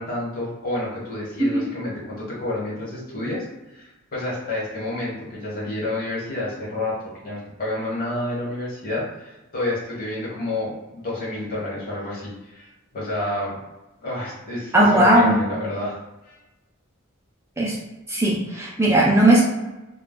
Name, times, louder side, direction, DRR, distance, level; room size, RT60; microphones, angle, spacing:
voice 1, 0.0-13.6 14.0-16.0 16.2-16.4, left 1 dB, 45° left, -6 dB, 1.2 m, -29 dB
voice 2, 14.7-15.4 17.6-17.8 18.1-19.4, right 1 dB, 15° right, -5 dB, 0.4 m, -17 dB
2.3 x 2.2 x 3.7 m, 1.0 s
head